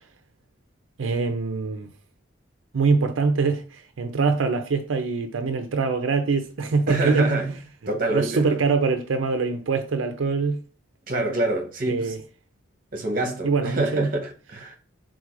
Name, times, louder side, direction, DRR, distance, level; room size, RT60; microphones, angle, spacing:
voice 1, 1.0-1.9 2.7-7.4 8.1-10.6 11.9-12.2 13.4-14.1, right 4 dB, 90° right, 0.5 m, -24 dB
voice 2, 6.9-7.5 7.9-8.6 11.1-12.1 12.9-14.7, right 2 dB, 45° right, 0.9 m, -26 dB
4.6 x 3.7 x 2.5 m
head